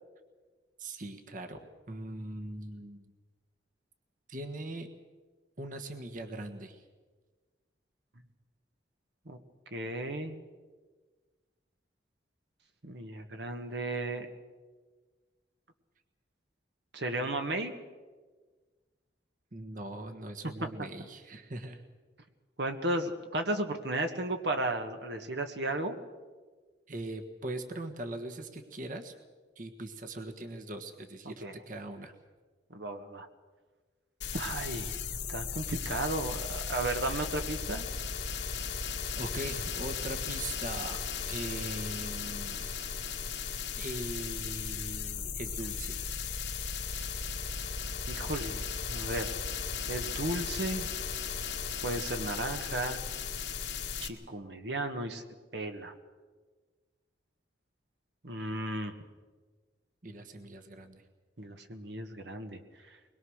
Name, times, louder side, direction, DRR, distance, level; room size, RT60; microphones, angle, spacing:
voice 1, 0.8-3.1 4.3-4.9 5.6-6.8 19.5-21.8 26.9-29.1 29.5-31.3 31.7-32.1 39.2-41.0 41.3-43.0 43.8-46.0 60.0-61.0, right 1 dB, 45° right, 5 dB, 1.5 m, -41 dB
voice 2, 9.7-10.4 12.8-14.3 16.9-17.7 22.6-26.0 31.4-31.6 32.7-33.3 34.3-37.9 48.1-48.6 48.9-49.4 49.9-50.9 51.8-53.0 54.0-55.2 55.5-55.9 58.2-58.9 61.4-62.6 62.9-63.0, right 1 dB, 70° right, 6 dB, 1.6 m, -34 dB
sound 1, 34.2-54.1, left 6 dB, 80° left, 2.1 m, -36 dB
22.5 x 21.5 x 6.5 m, 1.4 s
head